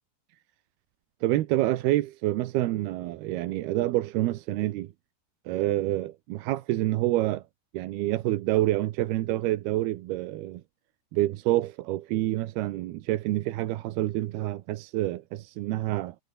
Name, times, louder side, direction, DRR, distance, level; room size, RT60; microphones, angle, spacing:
voice 1, 1.2-4.9 5.5-7.4 7.7-10.6 11.1-16.2, right 16 dB, 80° right, 2.9 m, -27 dB
omnidirectional pair, 4.6 m